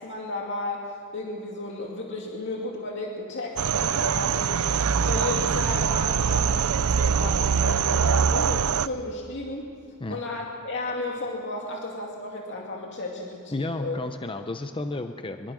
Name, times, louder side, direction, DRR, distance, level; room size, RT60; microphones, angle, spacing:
voice 1, 0.0-4.7 5.0-9.7 10.1-14.0, left 2 dB, 55° left, -1 dB, 2.4 m, -33 dB
sound 1, 3.6-8.9, right 6 dB, 80° right, 0.5 m, -23 dB
voice 2, 13.5-15.5, left 2 dB, 25° left, 7 dB, 0.7 m, -32 dB
24.0 x 23.0 x 6.3 m, 2.1 s
head